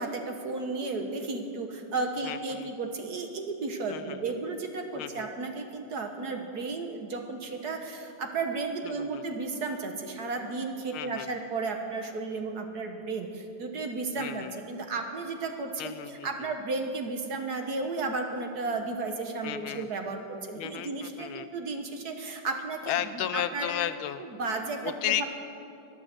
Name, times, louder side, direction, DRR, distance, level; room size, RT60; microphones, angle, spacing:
voice 1, 0.0-23.7 24.4-25.2, right 3 dB, 55° right, 4 dB, 1.5 m, -34 dB
voice 2, 2.2-2.7 3.9-4.3 5.0-5.3 8.8-9.2 10.9-11.3 14.2-14.6 15.8-16.5 19.4-19.9 20.6-21.5 22.9-24.2 24.8-25.2, left 11 dB, 80° left, 12 dB, 1.5 m, -34 dB
23.0 x 7.8 x 7.5 m, 2.6 s
omnidirectional pair, 2.4 m